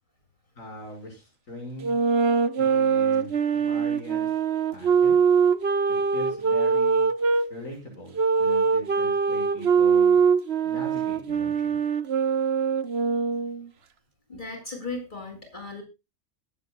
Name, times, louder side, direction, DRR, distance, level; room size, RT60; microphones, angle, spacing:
voice 1, 0.6-1.9 2.6-4.3 4.7-5.2 6.1-7.1 7.5-10.2 10.6-11.8, left 1 dB, 85° left, 1 dB, 6.2 m, -40 dB
sound 1, 1.8-7.4 8.1-13.7, right 6 dB, 55° right, 1.3 m, -23 dB
voice 2, 14.3-15.8, left 3 dB, 35° left, 1 dB, 7.3 m, -36 dB
22.0 x 9.5 x 2.3 m, 0.27 s
omnidirectional pair, 1.3 m